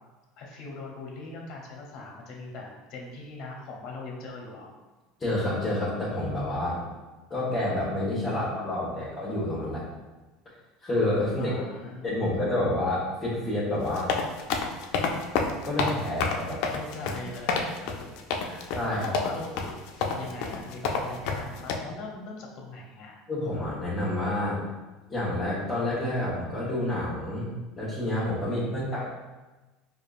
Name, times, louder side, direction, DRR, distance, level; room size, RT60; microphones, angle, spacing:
voice 1, 0.4-4.7 8.6-9.1 11.4-12.3 16.1-16.3 16.6-18.6 18.9-23.2, left 3 dB, 55° left, -1 dB, 0.8 m, -41 dB
voice 2, 5.2-6.8 7.3-9.8 10.8-11.6 12.0-14.1 15.6-16.6 17.0-17.1 17.5-17.6 18.7-19.1 23.3-24.6 25.1-27.5 27.8-29.1, left 1 dB, 20° left, -9 dB, 1.3 m, -28 dB
sound 1, 13.8-21.8, left 5 dB, 70° left, 0.4 m, -29 dB
4.8 x 2.4 x 2.5 m, 1.2 s
supercardioid pair, 110°, 0 cm